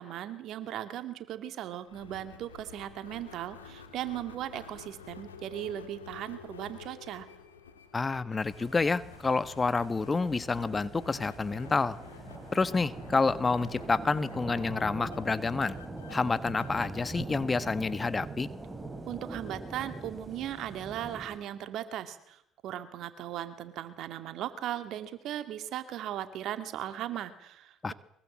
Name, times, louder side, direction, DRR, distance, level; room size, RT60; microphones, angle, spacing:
voice 1, 0.0-7.3 19.1-27.9, right 11 dB, 60° right, 10 dB, 2.5 m, -38 dB
sound 1, 1.9-18.4, left 6 dB, 90° left, 2.7 m, -51 dB
voice 2, 7.9-12.0 12.5-15.8 16.1-18.5 27.8-27.9, left 4 dB, 25° left, 15 dB, 1.3 m, -28 dB
sound 2, 8.4-21.4, right 2 dB, 15° right, 5.2 m, -43 dB
23.5 x 22.5 x 7.6 m, 0.75 s
hypercardioid pair, 60°, 0 cm